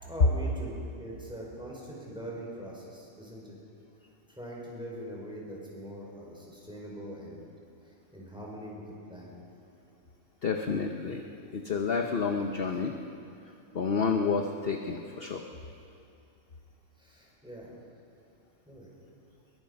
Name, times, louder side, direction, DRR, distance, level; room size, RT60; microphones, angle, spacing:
voice 1, 0.0-3.6 4.3-7.5 8.1-9.3 17.0-17.7 18.7-18.9, equal, 5° right, -4 dB, 5.2 m, -42 dB
voice 2, 10.4-11.3 11.5-13.0 13.7-15.5, left 5 dB, 45° left, 4 dB, 1.1 m, -30 dB
22.5 x 22.0 x 5.4 m, 2.6 s
omnidirectional pair, 1.5 m